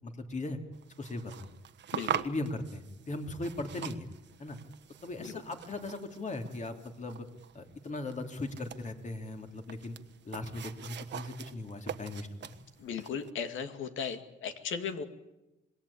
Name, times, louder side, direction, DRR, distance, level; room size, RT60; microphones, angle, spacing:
voice 1, 0.0-0.6 1.0-1.5 2.2-4.1 4.4-4.6 5.0-7.3 7.5-10.0 10.2-12.5, left 2 dB, 35° left, 5 dB, 3.3 m, -38 dB
sound 1, 0.7-13.3, right 9 dB, 65° right, 1.2 m, -43 dB
voice 2, 1.9-2.2 5.2-5.3 12.8-15.0, left 6 dB, 80° left, 8 dB, 2.3 m, -36 dB
26.5 x 20.5 x 8.7 m, 0.97 s
cardioid pair, 90°, 20 cm